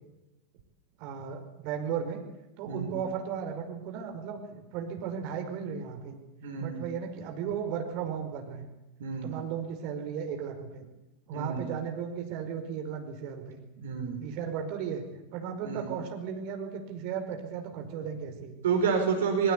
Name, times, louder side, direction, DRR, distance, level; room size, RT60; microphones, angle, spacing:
voice 1, 1.0-2.2 2.6-6.2 6.6-8.7 9.2-10.8 11.3-13.6 14.2-18.6, right 7 dB, 45° right, 4 dB, 5.1 m, -35 dB
voice 2, 6.4-6.8 9.0-9.3 11.3-11.7 13.8-14.2 15.6-15.9 18.6-19.5, right 6 dB, 60° right, 4 dB, 4.9 m, -29 dB
23.0 x 22.5 x 8.4 m, 1.0 s
figure-of-eight pair, 90°, 0 cm